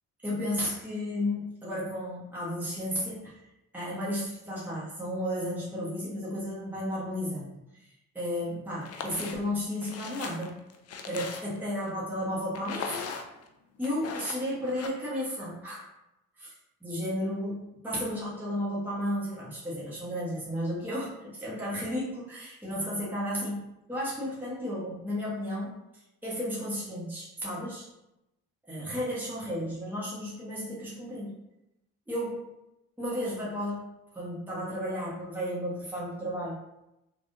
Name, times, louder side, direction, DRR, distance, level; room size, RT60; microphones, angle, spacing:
voice 1, 0.2-3.4 3.7-7.9 8.1-10.5 11.0-13.1 13.8-15.8 16.4-16.5 16.8-23.6 23.9-25.7 26.2-27.9 28.6-31.3 32.1-32.4 33.0-33.8 34.1-36.5, equal, 5° right, -8 dB, 1.2 m, -33 dB
sound 1, 8.8-9.4 9.8-11.7 12.5-13.5 13.8-14.9, left 5 dB, 40° left, 0.5 m, -39 dB
3.3 x 2.5 x 2.6 m, 0.89 s
supercardioid pair, 60°, 40 cm